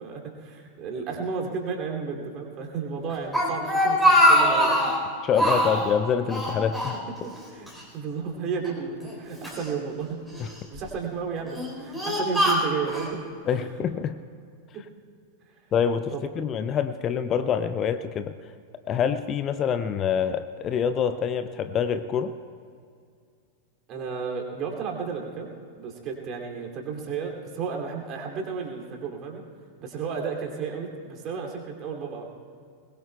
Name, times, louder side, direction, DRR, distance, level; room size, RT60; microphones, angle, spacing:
voice 1, 0.0-4.9 7.2-7.7 7.9-10.2 10.7-13.2 14.7-14.8 16.1-16.4 23.9-25.5 25.8-29.4 29.8-32.3, right 5 dB, 35° right, 1 dB, 2.7 m, -33 dB
Speech, 3.1-5.0 5.3-5.9 6.3-7.4 7.7-7.8 8.6-9.7 10.3-10.8 11.4-13.1, equal, ahead, 3.9 m, -23 dB
voice 2, 5.2-6.9 13.5-14.2 15.7-18.3 18.9-22.3, left 7 dB, 30° left, 11 dB, 0.6 m, -26 dB
22.0 x 20.5 x 2.3 m, 2.2 s
figure-of-eight pair, 90°, 0 cm